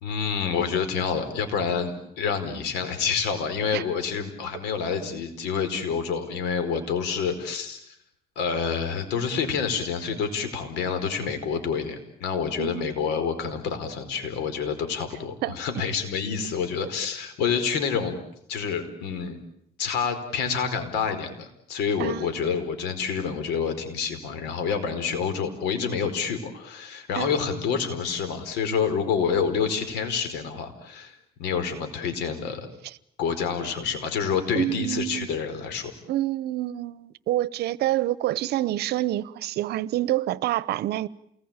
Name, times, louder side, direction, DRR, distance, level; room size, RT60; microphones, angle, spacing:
voice 1, 0.0-7.9 8.3-18.2 18.5-19.4 19.8-32.7 33.2-35.9, left 6 dB, 90° left, 4.8 m, -28 dB
voice 2, 12.6-12.9 15.4-15.6 22.0-22.5 27.2-27.5 32.8-33.0 34.5-35.3 36.1-41.1, right 14 dB, 75° right, 1.0 m, -27 dB
28.5 x 20.5 x 9.0 m
cardioid pair, 110°, 17 cm